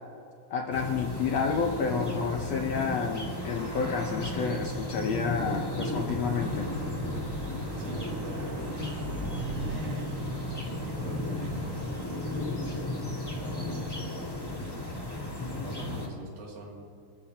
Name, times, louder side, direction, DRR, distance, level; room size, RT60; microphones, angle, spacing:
voice 1, 0.5-6.7, left 5 dB, 70° left, 2 dB, 1.7 m, -30 dB
sound 1, 0.7-16.1, left 1 dB, 10° left, 1.7 m, -34 dB
Car passing by / Accelerating revving vroom, 5.1-12.5, right 2 dB, 60° right, 2.5 m, -40 dB
voice 2, 7.8-8.6 9.0-9.1 9.4-11.9 13.2-13.9 15.6-16.8, right 2 dB, 85° right, -2 dB, 4.4 m, -44 dB
26.5 x 14.5 x 2.9 m, 2.6 s
omnidirectional pair, 3.9 m